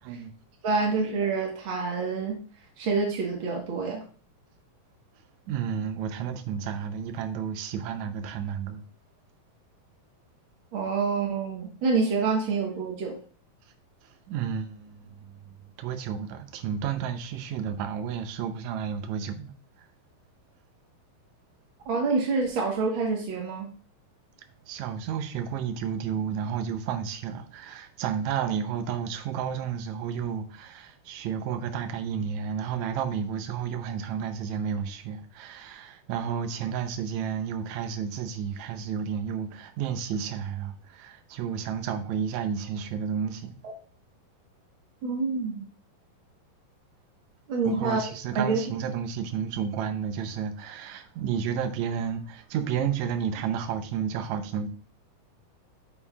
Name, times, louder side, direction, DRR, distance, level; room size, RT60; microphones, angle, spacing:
voice 1, 0.6-2.4 2.8-4.0 10.7-13.2 21.8-23.7 43.6-43.7 45.0-45.6 47.5-48.0 48.3-48.6, right 4 dB, 55° right, 1.4 m, -27 dB
voice 2, 5.5-8.8 14.0-15.4 15.8-19.5 24.7-43.6 47.6-54.7, right 7 dB, 80° right, 1.7 m, -31 dB
8.8 x 6.4 x 2.4 m
omnidirectional pair, 4.1 m